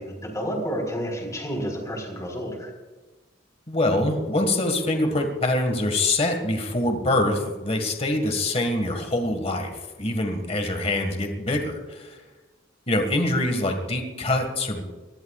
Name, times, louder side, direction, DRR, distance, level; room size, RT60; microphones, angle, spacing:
voice 1, 0.0-2.7, equal, 20° left, 1 dB, 4.2 m, -30 dB
voice 2, 3.7-9.7 10.0-12.2 12.9-14.9, left 1 dB, 35° left, 5 dB, 1.8 m, -24 dB
23.5 x 19.0 x 2.5 m, 1.2 s
head